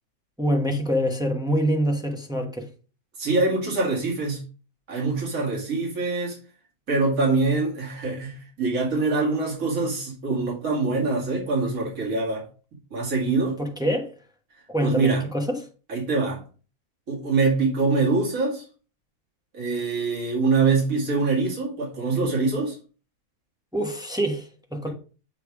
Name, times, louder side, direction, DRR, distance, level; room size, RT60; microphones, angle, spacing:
voice 1, 0.4-2.7 13.6-14.1 14.7-15.6 23.7-24.9, equal, 5° right, 0.8 m, -25 dB
voice 2, 3.2-4.4 4.9-6.4 6.9-12.5 12.9-13.6 14.8-15.2 15.9-16.4 17.1-18.6 19.5-22.8, right 3 dB, 65° right, 2.6 m, -24 dB
7.7 x 3.3 x 4.8 m
omnidirectional pair, 1.6 m